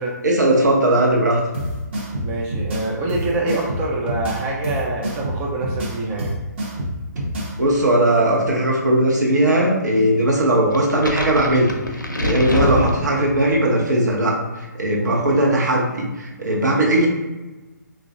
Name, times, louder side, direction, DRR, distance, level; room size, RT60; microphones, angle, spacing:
voice 1, 0.2-1.4 7.6-17.1, right 1 dB, 70° right, -2 dB, 0.8 m, -18 dB
sound 1, 1.5-7.5, equal, 35° right, 0.7 m, -27 dB
voice 2, 2.2-6.4, right 2 dB, 15° right, -3 dB, 0.3 m, -25 dB
sound 2, 10.7-13.6, left 1 dB, 85° left, 0.5 m, -24 dB
3.3 x 2.4 x 2.5 m, 1.1 s
figure-of-eight pair, 135°, 10 cm